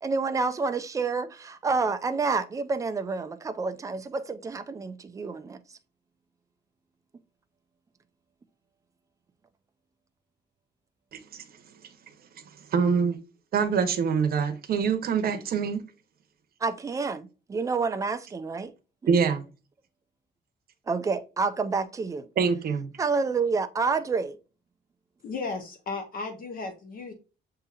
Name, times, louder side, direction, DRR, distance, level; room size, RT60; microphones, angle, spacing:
voice 1, 0.0-5.6 16.6-18.7 20.9-22.3 23.0-24.4, right 4 dB, 15° right, 0.3 m, -28 dB
voice 2, 12.7-13.2 13.5-15.8 19.1-19.4 22.4-22.9, right 6 dB, 50° right, 0.8 m, -24 dB
voice 3, 25.2-27.1, left 4 dB, 45° left, 0.8 m, -35 dB
6.8 x 2.8 x 2.4 m
cardioid pair, 175°, 20 cm